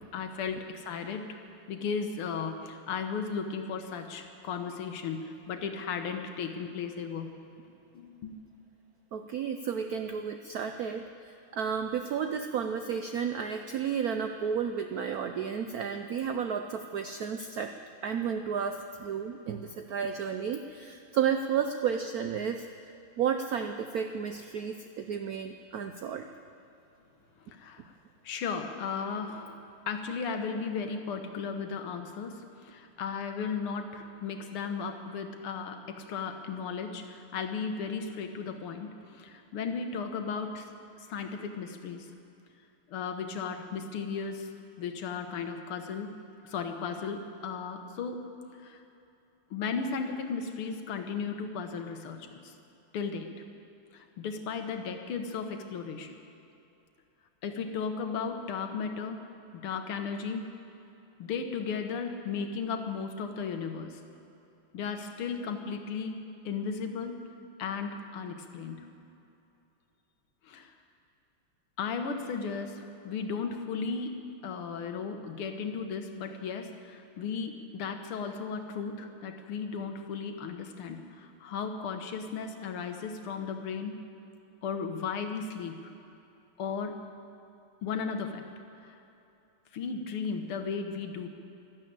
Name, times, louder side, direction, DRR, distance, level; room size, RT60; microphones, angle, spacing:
voice 1, 0.1-1.4 1.7-7.3 7.9-8.4 27.5-27.9 28.2-29.6 29.9-40.7 41.0-42.1 42.9-46.1 46.4-48.2 48.6-48.8 49.5-52.5 52.9-53.3 53.9-56.2 57.4-59.2 59.5-60.5 61.2-64.0 64.7-67.2 67.6-68.9 70.4-70.7 71.8-84.0 84.6-85.9 86.6-87.0 87.8-88.4 88.8-89.0 89.7-91.3, left 5 dB, 85° left, 6 dB, 2.0 m, -35 dB
voice 2, 9.1-17.7 18.0-22.6 23.2-26.3, right 7 dB, 80° right, 6 dB, 0.8 m, -32 dB
12.5 x 12.0 x 8.7 m, 2.8 s
omnidirectional pair, 2.3 m